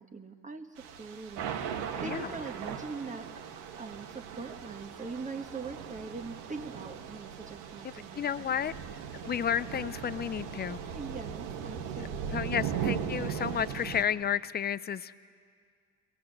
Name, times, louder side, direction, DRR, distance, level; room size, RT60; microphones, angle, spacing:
voice 1, 0.0-3.3 3.8-8.7 10.9-12.7, right 4 dB, 20° right, 5 dB, 1.3 m, -42 dB
Thunder / Rain, 0.8-14.0, right 8 dB, 75° right, 1.6 m, -38 dB
voice 2, 8.2-8.7 9.2-10.8 12.3-15.1, left 8 dB, 25° left, 16 dB, 0.5 m, -31 dB
23.0 x 18.0 x 7.9 m, 2.1 s
supercardioid pair, 105°, 40 cm